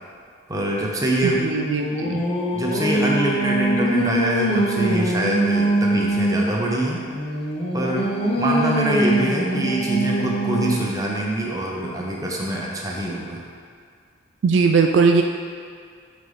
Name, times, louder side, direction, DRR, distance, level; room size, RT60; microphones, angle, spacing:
voice 1, 0.5-1.4 2.0-2.2 2.5-7.0 7.7-13.4, right 1 dB, 15° right, -2 dB, 0.7 m, -24 dB
Singing, 1.1-6.5 7.1-11.0, right 1 dB, 30° left, 0.7 m, -23 dB
voice 2, 1.2-2.2 14.4-15.2, right 5 dB, 60° right, 3 dB, 0.3 m, -19 dB
8.7 x 4.0 x 3.3 m, 2.1 s
head